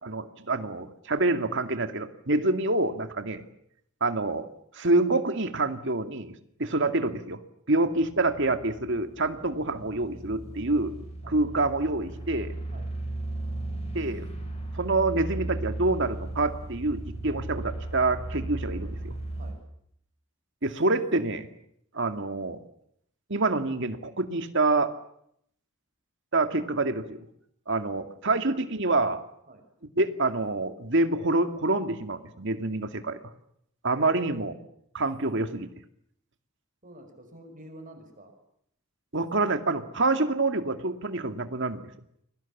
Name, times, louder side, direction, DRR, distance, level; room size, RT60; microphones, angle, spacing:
voice 1, 0.0-3.4 4.0-4.5 4.7-6.3 6.6-7.4 7.7-10.9 11.3-12.5 13.9-14.3 14.7-19.1 20.6-21.5 21.9-22.6 23.3-24.9 26.3-27.2 27.7-29.2 30.0-33.2 33.8-34.5 34.9-35.7 39.1-41.9, right 2 dB, 60° right, 8 dB, 2.2 m, -27 dB
sound 1, 8.0-19.5, right 2 dB, 30° left, 7.4 m, -36 dB
voice 2, 34.0-34.7 36.8-38.3, right 1 dB, 40° right, 5 dB, 5.3 m, -47 dB
29.5 x 22.5 x 7.3 m, 0.72 s
head